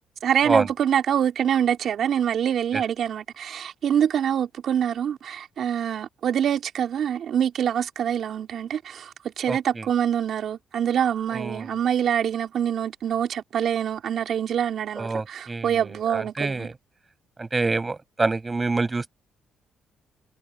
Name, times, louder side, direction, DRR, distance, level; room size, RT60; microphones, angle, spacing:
voice 1, 0.2-16.7, right 9 dB, 65° right, 3.7 m, -25 dB
voice 2, 9.5-9.9 11.3-11.7 15.0-16.7 17.4-19.1, right 3 dB, 25° right, 7.7 m, -27 dB
cardioid pair, 90°, 0 cm